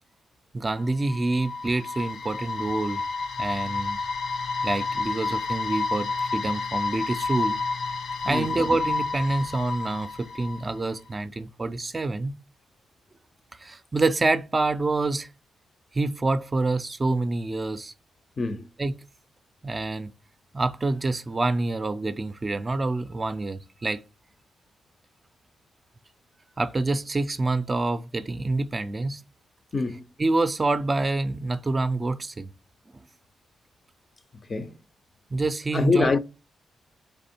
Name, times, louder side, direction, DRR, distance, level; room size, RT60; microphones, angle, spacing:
voice 1, 0.5-3.0 3.4-4.0 4.6-7.6 8.2-12.3 13.5-15.3 15.9-17.9 18.8-18.9 19.6-20.1 20.5-24.0 26.6-29.2 30.2-32.5 35.3-36.1, right 2 dB, 25° right, 0.4 m, -27 dB
sound 1, 0.8-10.9, left 4 dB, 70° left, 0.8 m, -30 dB
voice 2, 18.4-18.7 29.7-30.0 34.5-34.7 35.7-36.2, left 4 dB, 35° left, 0.5 m, -24 dB
3.4 x 3.4 x 4.2 m
cardioid pair, 100°, 0 cm